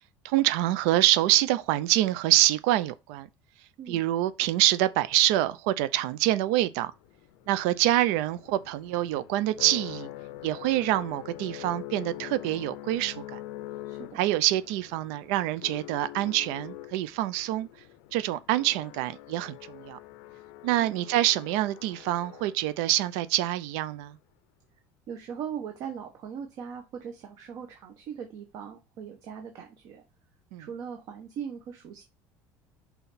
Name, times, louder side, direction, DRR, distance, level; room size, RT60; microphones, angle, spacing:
voice 1, 0.2-3.3 3.9-6.9 7.5-10.1 10.4-13.4 14.1-17.7 18.1-20.0 20.6-24.2 30.5-30.7, right 15 dB, 90° right, 0.5 m, -26 dB
sound 1, 6.8-23.0, left 16 dB, 90° left, 0.5 m, -44 dB
voice 2, 13.8-14.2 20.8-20.9 25.1-30.0 30.6-32.0, right 7 dB, 45° right, 1.0 m, -39 dB
5.8 x 4.1 x 4.1 m
cardioid pair, 175°, 8 cm